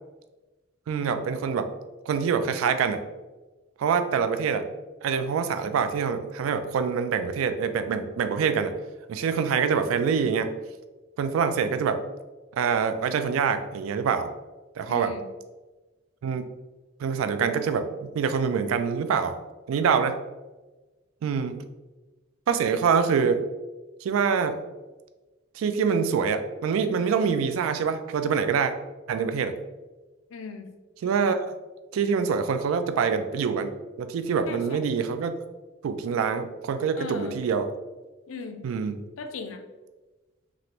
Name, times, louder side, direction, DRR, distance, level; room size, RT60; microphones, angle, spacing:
voice 1, 0.9-1.7 2.1-3.0 3.8-4.7 5.0-8.7 9.1-10.6 11.2-12.0 12.5-14.3 14.8-15.2 16.2-16.5 17.0-19.4 19.7-20.2 21.2-21.6 22.5-23.4 24.0-24.6 25.6-28.7 29.1-29.5 31.0-31.5 31.9-33.7 34.0-35.3 35.8-37.7 38.6-39.0, right 6 dB, 90° right, 10 dB, 0.3 m, -25 dB
voice 2, 14.9-15.3 30.3-30.7 34.5-34.8 37.0-37.4 38.3-38.6 39.2-39.6, left 4 dB, 85° left, 6 dB, 0.4 m, -37 dB
3.2 x 2.5 x 2.8 m, 1.2 s
head